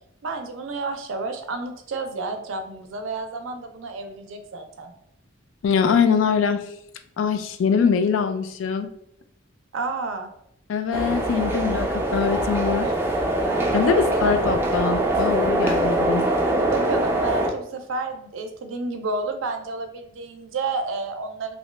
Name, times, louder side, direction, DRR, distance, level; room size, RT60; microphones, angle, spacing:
voice 1, 0.2-4.9 9.7-10.3 13.4-14.5 16.4-21.6, right 3 dB, 85° right, 6 dB, 0.4 m, -31 dB
voice 2, 5.6-6.6 7.2-8.9 10.7-12.9 13.7-16.3, left 6 dB, 75° left, 8 dB, 0.3 m, -23 dB
sound 1, 10.9-17.5, right 1 dB, 10° right, 0.3 m, -23 dB
2.7 x 2.2 x 3.2 m, 0.75 s
head